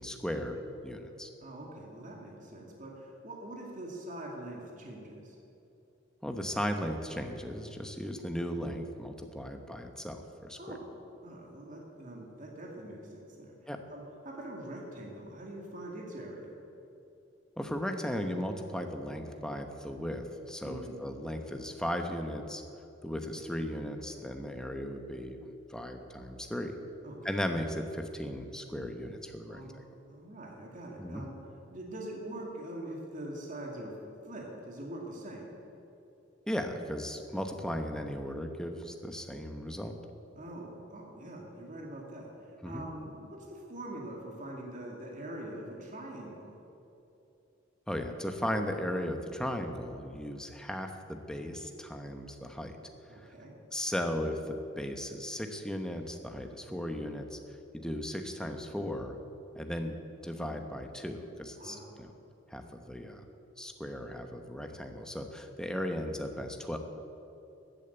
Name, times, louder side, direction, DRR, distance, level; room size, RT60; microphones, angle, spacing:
voice 1, 0.0-1.3 6.2-10.8 13.7-13.8 17.6-22.6 23.0-26.7 27.2-29.7 31.0-31.3 36.5-40.0 42.6-42.8 47.9-52.8 53.1-53.3 53.7-57.4 57.7-59.1 59.5-62.1 62.5-63.3 63.6-66.8, equal, 5° left, 5 dB, 1.0 m, -36 dB
voice 2, 1.4-5.4 10.6-10.9 11.2-16.6 20.6-21.0 27.0-27.5 29.5-29.8 30.1-31.4 31.7-33.9 34.2-35.5 40.4-46.6 53.1-53.5 61.6-61.9, right 1 dB, 45° right, -1 dB, 2.2 m, -43 dB
14.0 x 8.8 x 8.1 m, 2.9 s
head